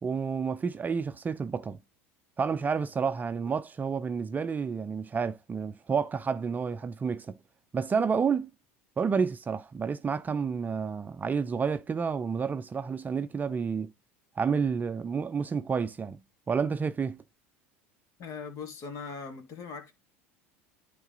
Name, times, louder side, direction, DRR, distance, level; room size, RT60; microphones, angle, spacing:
voice 1, 0.0-1.8 2.4-7.4 7.7-8.5 9.0-13.9 14.4-16.2 16.5-17.2, right 6 dB, 25° right, 0.6 m, -30 dB
voice 2, 18.2-19.9, left 5 dB, 50° left, 2.5 m, -40 dB
11.0 x 3.8 x 3.9 m
hypercardioid pair, 85°, 7 cm